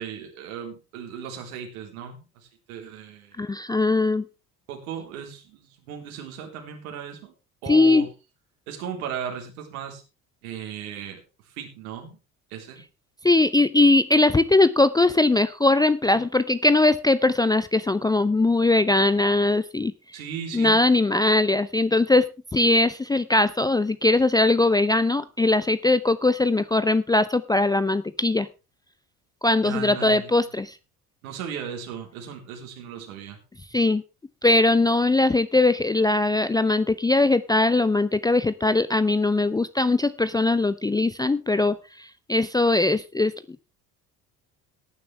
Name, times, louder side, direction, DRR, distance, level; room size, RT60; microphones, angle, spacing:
voice 1, 0.0-3.4 4.7-7.3 7.6-8.1 8.7-10.0 10.4-11.2 11.6-12.2 12.5-12.8 20.1-20.8 29.6-30.3 31.2-33.4, right 7 dB, 70° right, 2 dB, 3.8 m, -36 dB
voice 2, 3.4-4.2 7.7-8.1 13.2-19.9 20.5-28.5 29.4-30.8 33.7-34.0 34.4-43.4, left 2 dB, 10° left, 14 dB, 0.5 m, -20 dB
18.0 x 10.0 x 3.4 m, 0.30 s
figure-of-eight pair, 60°, 45 cm